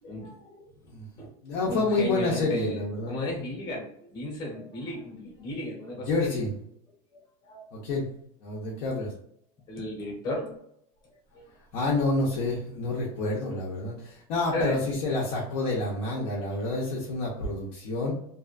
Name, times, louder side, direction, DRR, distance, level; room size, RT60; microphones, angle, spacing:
voice 1, 0.0-0.6 1.2-1.3 1.6-6.4 7.1-7.6 9.7-10.6 11.3-11.4 14.5-14.8, left 1 dB, 20° left, -2 dB, 1.0 m, -35 dB
voice 2, 1.4-3.2 6.1-6.5 7.7-8.0 8.4-9.1 11.7-18.1, left 2 dB, 45° left, -4 dB, 0.6 m, -28 dB
2.7 x 2.3 x 2.4 m, 0.71 s
supercardioid pair, 175°, 19 cm